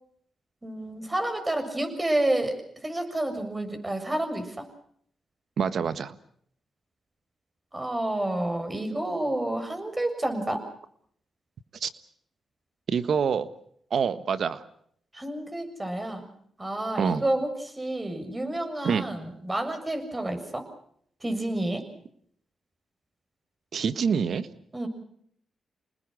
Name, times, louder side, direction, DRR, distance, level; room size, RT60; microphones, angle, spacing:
voice 1, 0.6-2.6 2.8-4.7 7.7-10.6 15.1-16.3 16.6-20.6 21.2-21.8 24.7-24.9, right 1 dB, 20° right, 6 dB, 7.0 m, -29 dB
voice 2, 5.6-6.1 11.8-11.9 12.9-13.5 13.9-14.6 17.0-17.2 18.8-19.0 23.7-24.5, right 6 dB, 65° right, 13 dB, 1.5 m, -26 dB
29.5 x 20.0 x 6.4 m, 0.65 s
supercardioid pair, 50°, 0 cm